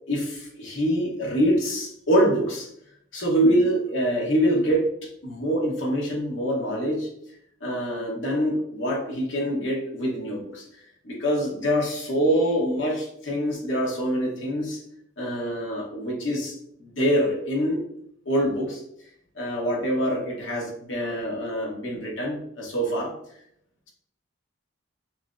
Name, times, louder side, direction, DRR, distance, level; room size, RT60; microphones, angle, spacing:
voice 1, 0.1-2.7 3.1-7.1 7.6-10.7 11.0-14.8 15.2-17.8 18.2-18.8 19.4-23.1, equal, 65° left, -2 dB, 1.1 m, -25 dB
5.7 x 2.1 x 2.5 m, 0.72 s
head